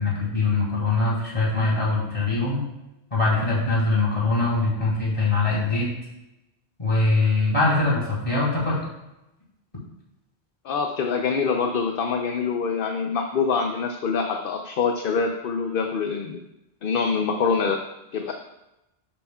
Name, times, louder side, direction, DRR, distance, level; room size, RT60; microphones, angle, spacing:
voice 1, 0.0-2.6 3.1-5.9 6.8-8.8, left 3 dB, 30° left, -6 dB, 3.0 m, -22 dB
voice 2, 10.6-16.4 16.8-17.8 18.1-18.3, left 5 dB, 60° left, 4 dB, 0.8 m, -25 dB
11.0 x 8.6 x 2.3 m, 0.92 s
omnidirectional pair, 1.1 m